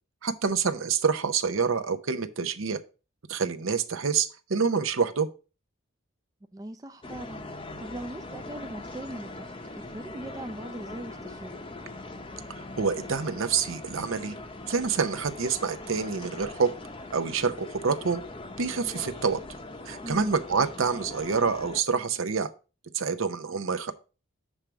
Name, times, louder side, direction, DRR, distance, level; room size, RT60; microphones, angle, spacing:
voice 1, 0.2-2.8 3.3-5.3 12.8-14.3 14.7-16.7 17.1-18.2 18.6-19.4 19.9-22.5 22.9-23.9, right 5 dB, 70° right, 0.7 m, -27 dB
voice 2, 6.5-7.5 7.8-11.6 20.0-20.3, right 1 dB, 15° right, 0.4 m, -40 dB
sound 1, 7.0-21.8, left 2 dB, 25° left, 0.7 m, -41 dB
7.3 x 3.4 x 6.1 m
head